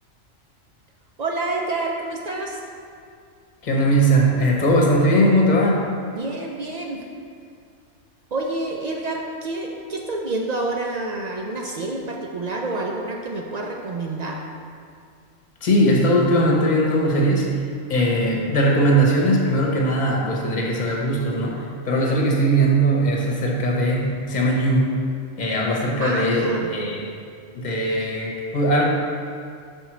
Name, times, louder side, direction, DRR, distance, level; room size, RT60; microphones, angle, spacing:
voice 1, 1.2-2.6 6.1-7.1 8.3-14.4 26.0-26.7, right 2 dB, 60° right, 0 dB, 0.4 m, -28 dB
voice 2, 3.6-5.8 15.6-17.5 17.9-25.0 25.4-27.1 27.5-28.8, right 1 dB, 35° left, -1 dB, 1.0 m, -20 dB
5.4 x 4.3 x 6.0 m, 2.3 s
omnidirectional pair, 1.3 m